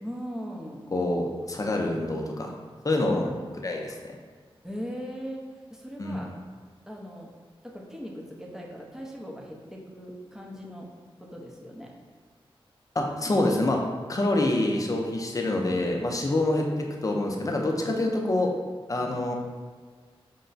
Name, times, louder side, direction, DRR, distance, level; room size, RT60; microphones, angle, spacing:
voice 1, 0.0-0.8 3.0-3.3 3.7-3.9 4.6-6.3 6.9-7.3 7.6-10.9 11.2-11.9 19.0-19.2, equal, 5° right, -2 dB, 0.7 m, -39 dB
voice 2, 0.9-2.5 2.8-3.3 3.6-4.1 6.0-6.3 12.9-13.8 14.1-16.6 17.0-18.5 18.9-19.3, left 2 dB, 35° left, 1 dB, 0.6 m, -26 dB
5.3 x 2.2 x 3.9 m, 1.5 s
wide cardioid pair, 80°, 10 cm